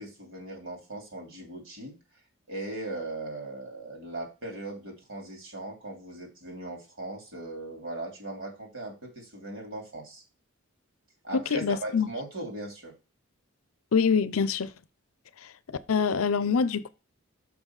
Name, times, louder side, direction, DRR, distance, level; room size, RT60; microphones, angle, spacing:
voice 1, 0.0-2.0 2.5-10.2 11.2-12.9, right 2 dB, 65° right, 3.0 m, -39 dB
voice 2, 11.3-12.1 13.9-14.7 15.4-16.9, left 5 dB, 80° left, 0.6 m, -25 dB
6.1 x 5.4 x 4.8 m
head